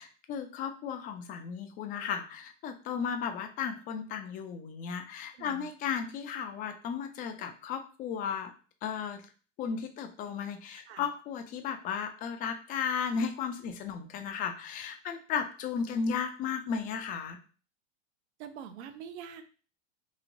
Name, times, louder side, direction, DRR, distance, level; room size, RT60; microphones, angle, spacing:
voice 1, 0.0-8.5 8.8-9.2 9.6-17.4, left 6 dB, 25° left, 6 dB, 0.3 m, -35 dB
voice 2, 5.4-5.7 10.9-11.1 18.4-19.4, right 8 dB, 60° right, 9 dB, 0.6 m, -44 dB
3.0 x 2.8 x 2.5 m, 0.37 s
hypercardioid pair, 95°, 38 cm